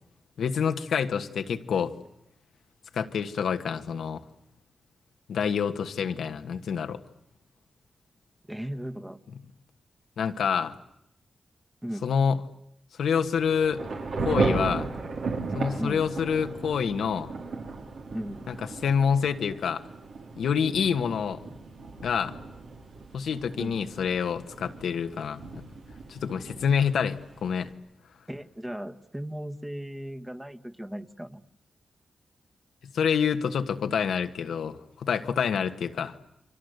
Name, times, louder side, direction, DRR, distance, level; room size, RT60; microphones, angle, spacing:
voice 1, 0.4-1.9 2.9-4.2 5.3-7.0 10.2-10.7 12.0-12.4 13.0-13.8 14.2-14.9 15.5-17.3 18.5-18.6 18.8-19.8 20.4-21.4 22.0-22.4 23.1-25.6 26.1-27.7 32.9-36.1, left 7 dB, 90° left, 7 dB, 1.4 m, -27 dB
voice 2, 8.5-9.2 11.8-12.1 15.8-16.0 18.1-18.4 23.6-23.8 28.3-31.4, equal, 10° right, 7 dB, 1.5 m, -36 dB
Thunder / Rain, 13.2-27.7, right 3 dB, 80° right, 4.6 m, -35 dB
29.0 x 24.0 x 8.0 m, 0.80 s
cardioid pair, 80°, 0 cm